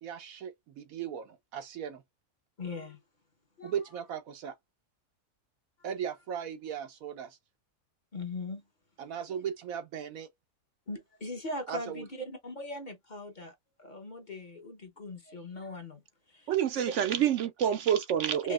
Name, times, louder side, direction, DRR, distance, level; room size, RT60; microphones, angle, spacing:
voice 1, 0.0-2.0 3.6-4.6 5.8-7.4 9.0-10.3 11.7-12.1, right 8 dB, 90° right, 1.3 m, -37 dB
voice 2, 2.6-3.0 3.6-3.7 8.1-8.6 9.3-9.4 10.9-16.0 16.3-16.5 18.4-18.5, left 2 dB, 40° left, 0.9 m, -40 dB
voice 3, 16.5-18.5, right 9 dB, 70° right, 0.8 m, -27 dB
5.2 x 2.6 x 2.3 m
omnidirectional pair, 1.4 m